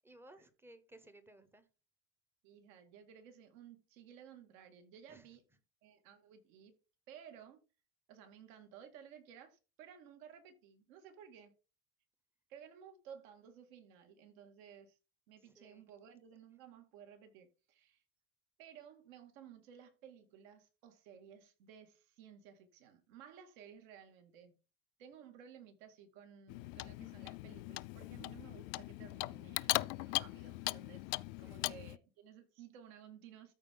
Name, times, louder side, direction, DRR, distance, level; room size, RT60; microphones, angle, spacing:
voice 1, 0.0-1.7 5.1-5.3 15.4-15.9 31.4-31.6, right 1 dB, 5° right, 0.7 m, -59 dB
voice 2, 2.4-5.4 5.8-6.8 7.1-7.6 8.1-11.5 12.5-15.0 15.3-18.0 18.6-24.6 25.0-31.0 31.4-33.5, right 8 dB, 70° right, 2.4 m, -56 dB
Clock, 26.5-32.0, left 23 dB, 70° left, 0.5 m, -39 dB
13.5 x 4.5 x 3.8 m
cardioid pair, 165°, 40 cm